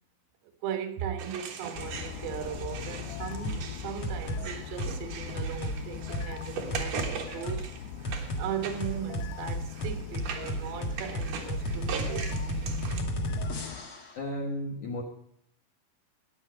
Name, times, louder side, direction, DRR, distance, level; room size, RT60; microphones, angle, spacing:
voice 1, 0.6-7.8 8.4-12.5, right 9 dB, 85° right, 3.9 m, -38 dB
sound 1, 1.2-13.0, right 6 dB, 65° right, 2.1 m, -41 dB
sound 2, 1.7-13.8, left 11 dB, 85° left, 2.4 m, -41 dB
sound 3, 3.4-3.6 4.0-4.4 4.8-5.0 5.4-5.8 6.1-6.3 6.7-7.1 7.5-7.6 8.0-8.4 8.8-14.1, equal, 55° left, 1.5 m, -32 dB
voice 2, 14.2-15.0, left 1 dB, 70° left, 1.8 m, -33 dB
15.0 x 9.8 x 5.1 m
omnidirectional pair, 5.8 m